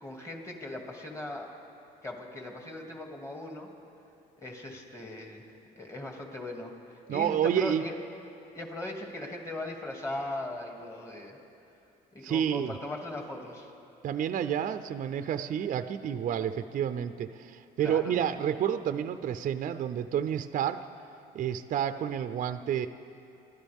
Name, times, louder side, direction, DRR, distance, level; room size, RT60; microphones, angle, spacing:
voice 1, 0.0-1.5 2.0-3.7 4.4-5.4 5.8-8.0 8.5-11.4 12.1-13.7 17.8-18.1, left 1 dB, 15° left, 1 dB, 2.4 m, -39 dB
voice 2, 7.1-7.8 12.2-12.7 14.0-20.8 21.3-22.9, right 9 dB, 50° right, 10 dB, 0.6 m, -29 dB
27.5 x 12.5 x 3.6 m, 2.8 s
cardioid pair, 110°, 17 cm